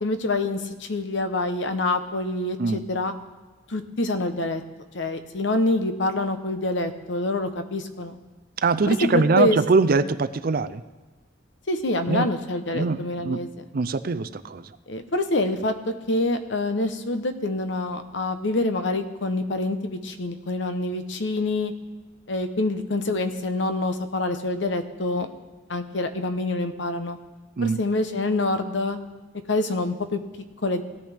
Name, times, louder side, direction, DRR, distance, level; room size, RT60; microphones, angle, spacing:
voice 1, 0.0-3.1 3.7-4.6 4.9-8.2 8.9-9.6 11.7-13.5 14.9-15.7 16.1-21.7 22.3-25.3 25.7-27.2 27.6-29.0 29.5-30.2 30.6-30.8, left 2 dB, 70° left, 8 dB, 0.9 m, -26 dB
voice 2, 8.6-10.8 12.1-12.3 12.7-13.4 13.7-14.7 27.6-27.8, right 4 dB, 50° right, 13 dB, 0.5 m, -22 dB
18.0 x 10.5 x 3.5 m, 1.3 s
head